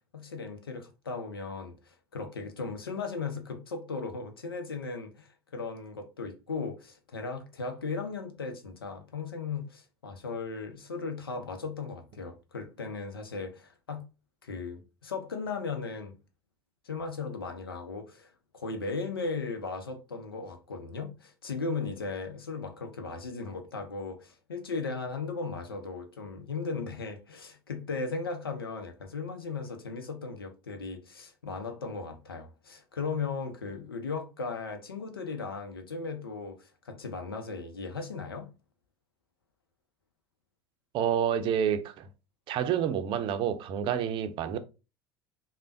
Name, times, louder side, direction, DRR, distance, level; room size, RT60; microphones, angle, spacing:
voice 1, 0.1-5.3 5.5-14.1 14.4-16.1 16.8-38.5, left 4 dB, 90° left, 0.6 m, -37 dB
voice 2, 40.9-42.1 42.5-44.6, right 9 dB, 45° right, 0.5 m, -28 dB
3.3 x 2.1 x 2.6 m
hypercardioid pair, 75°, 12 cm